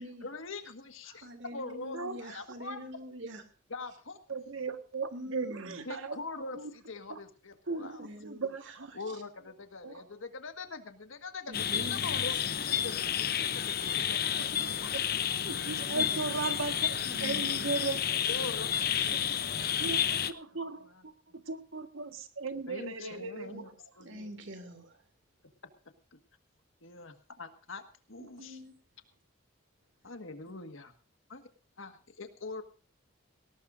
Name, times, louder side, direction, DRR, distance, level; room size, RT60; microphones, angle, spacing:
voice 1, 0.0-2.8 3.7-4.2 5.9-8.1 8.9-14.9 15.7-16.2 18.2-21.4 22.7-23.7 24.0-24.4 26.1-26.2 26.8-28.6 30.0-30.9 31.3-31.4 31.8-32.6, left 3 dB, 75° left, 1.7 m, -44 dB
voice 2, 1.1-3.4 5.1-5.8 7.8-9.0 11.5-12.0 17.0-17.9 24.0-25.0 28.4-28.7, equal, 60° right, 2.6 m, -44 dB
voice 3, 4.3-6.2 7.7-8.9 9.8-9.9 14.6-14.7 15.4-18.2 19.8-20.0 20.3-23.6, right 4 dB, 75° right, 1.5 m, -37 dB
sound 1, 11.5-20.3, left 9 dB, 45° left, 0.7 m, -31 dB
18.5 x 18.5 x 2.6 m
head